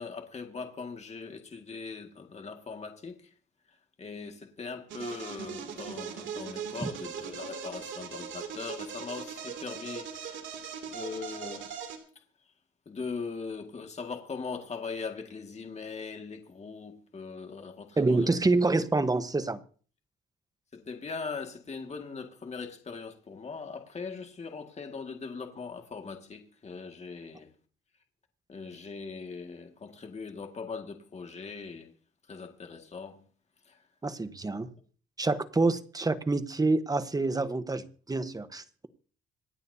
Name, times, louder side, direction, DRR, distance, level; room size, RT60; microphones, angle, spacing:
voice 1, 0.0-3.3 3.7-10.6 10.9-11.7 12.2-12.3 12.9-18.3 20.7-27.5 28.5-31.9 32.3-33.3 33.6-33.9, left 5 dB, 35° left, 2.0 m, -40 dB
sound 1, 4.9-12.0, right 7 dB, 70° right, 2.8 m, -40 dB
voice 2, 18.0-19.6 34.0-34.7 35.2-38.9, right 3 dB, 20° right, 1.1 m, -27 dB
26.5 x 9.0 x 2.8 m
cardioid pair, 90°, 20 cm